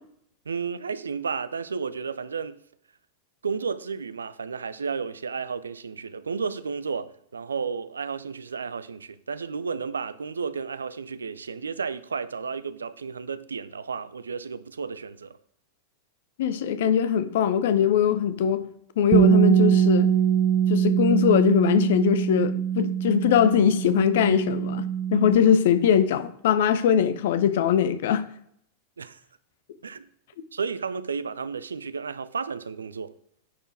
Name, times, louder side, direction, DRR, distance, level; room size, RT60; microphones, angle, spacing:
voice 1, 0.5-2.6 3.4-15.4 29.0-29.2 29.8-30.1 30.5-33.1, right 5 dB, 75° right, 0.5 m, -32 dB
voice 2, 16.4-18.7 19.0-20.1 20.7-28.2, left 8 dB, 55° left, 0.7 m, -21 dB
Bass guitar, 19.1-25.4, right 9 dB, 35° right, 0.8 m, -22 dB
10.0 x 4.5 x 4.4 m
figure-of-eight pair, 90°, 0 cm